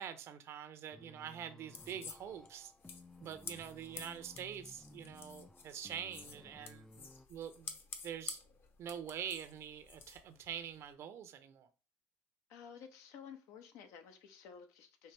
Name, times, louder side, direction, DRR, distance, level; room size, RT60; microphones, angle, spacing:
voice 1, 0.0-2.7 3.2-7.8 8.0-8.4 8.8-11.7, right 9 dB, 60° right, 0.7 m, -45 dB
sound 1, 0.9-7.3, left 2 dB, 10° left, 0.3 m, -58 dB
sound 2, 1.7-10.9, left 5 dB, 45° left, 0.9 m, -51 dB
voice 2, 12.5-15.1, left 7 dB, 80° left, 0.9 m, -53 dB
5.6 x 2.9 x 3.2 m
supercardioid pair, 80°, 5 cm